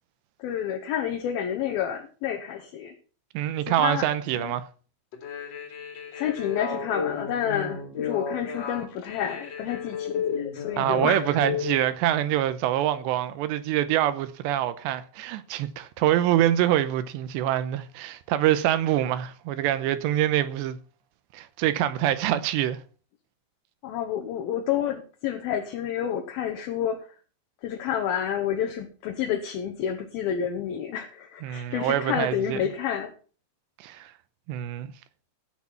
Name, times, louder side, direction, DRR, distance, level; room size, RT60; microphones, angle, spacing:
voice 1, 0.4-2.9 3.7-4.5 6.1-11.4 23.8-27.1 27.6-33.1, left 9 dB, 70° left, 2.5 m, -29 dB
voice 2, 3.3-4.6 10.8-20.8 21.3-22.8 31.4-32.6 33.8-34.1 34.5-34.9, right 12 dB, 80° right, 2.8 m, -25 dB
sound 1, 5.1-11.8, left 7 dB, 45° left, 2.9 m, -33 dB
15.5 x 6.5 x 5.7 m
omnidirectional pair, 5.3 m